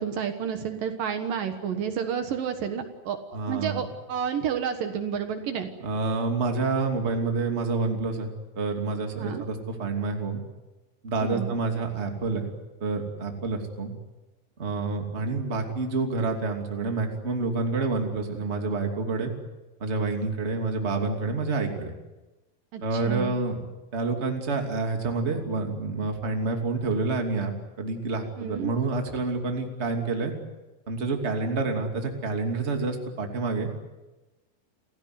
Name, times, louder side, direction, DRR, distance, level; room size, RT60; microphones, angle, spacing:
voice 1, 0.0-3.2 3.5-5.7 9.2-9.4 11.2-11.6 22.7-23.3 28.4-28.7, right 8 dB, 65° right, 7 dB, 2.9 m, -30 dB
voice 2, 3.3-3.8 5.8-10.4 11.0-12.5 12.8-13.9 14.6-19.3 19.8-21.9 22.8-23.6 23.9-27.5 27.8-30.3 30.9-33.7, right 3 dB, 20° right, 3 dB, 2.5 m, -28 dB
28.5 x 16.5 x 9.5 m, 1.1 s
omnidirectional pair, 4.5 m